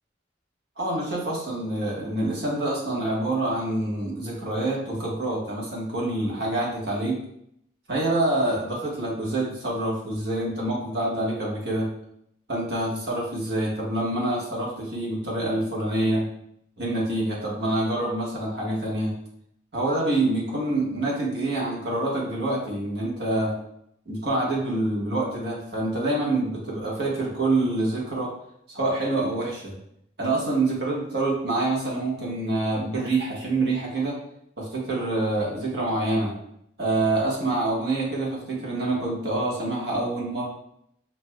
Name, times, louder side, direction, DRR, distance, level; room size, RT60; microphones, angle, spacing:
voice 1, 0.8-7.2 7.9-11.9 12.5-16.2 16.8-19.2 19.7-23.6 24.1-28.3 28.7-29.8 30.2-34.2 34.6-36.3 36.8-40.4, right 2 dB, 60° right, -5 dB, 1.4 m, -26 dB
6.3 x 2.9 x 2.3 m, 0.75 s
head